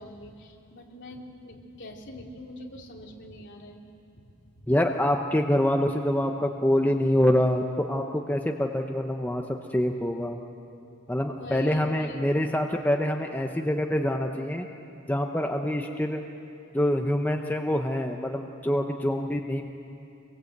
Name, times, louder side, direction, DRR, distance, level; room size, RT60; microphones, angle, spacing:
voice 1, 0.0-3.8 4.1-4.6 11.3-12.2, left 1 dB, 55° left, 0 dB, 3.2 m, -44 dB
voice 2, 4.7-9.4 9.7-10.4 11.1-14.7 15.1-16.2 16.7-19.6, left 1 dB, 10° left, 3 dB, 0.9 m, -25 dB
26.5 x 22.5 x 8.1 m, 2.7 s
head